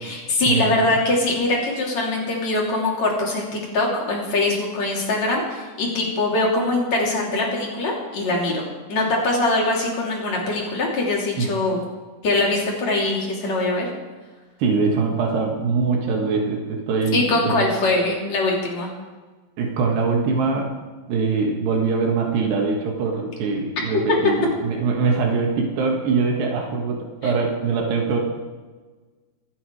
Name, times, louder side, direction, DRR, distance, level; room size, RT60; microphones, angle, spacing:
voice 1, 0.0-11.8 12.2-13.9 17.1-18.9 27.2-27.3, left 2 dB, 45° left, -2 dB, 4.2 m, -22 dB
voice 2, 14.6-17.5 19.6-20.7 21.1-28.2, right 4 dB, 80° right, 0 dB, 3.8 m, -22 dB
26.0 x 9.8 x 4.9 m, 1.3 s
omnidirectional pair, 4.8 m